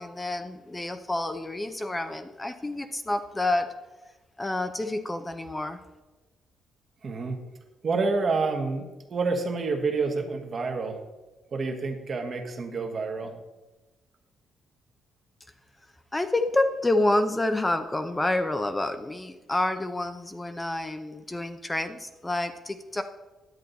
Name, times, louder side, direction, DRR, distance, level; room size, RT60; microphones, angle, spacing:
voice 1, 0.0-3.7 4.4-5.8 16.1-23.0, left 2 dB, 15° left, 8 dB, 0.6 m, -28 dB
voice 2, 7.0-7.4 7.8-8.8 9.1-11.0 11.5-13.3, right 4 dB, 45° right, 4 dB, 1.4 m, -28 dB
10.5 x 7.7 x 4.0 m, 1.1 s
cardioid pair, 90°, 0 cm